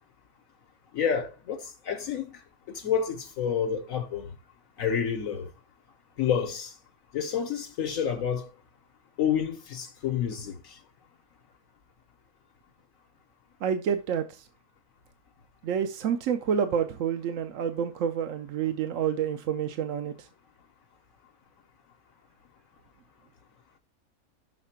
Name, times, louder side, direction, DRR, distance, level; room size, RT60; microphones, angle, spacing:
voice 1, 0.9-2.3 2.7-4.3 4.8-5.5 6.2-6.7 7.1-8.5 9.2-10.6, left 8 dB, 65° left, 1.2 m, -29 dB
voice 2, 13.6-14.4 15.6-20.3, right 8 dB, 65° right, 0.9 m, -28 dB
6.6 x 3.6 x 5.6 m
omnidirectional pair, 1.5 m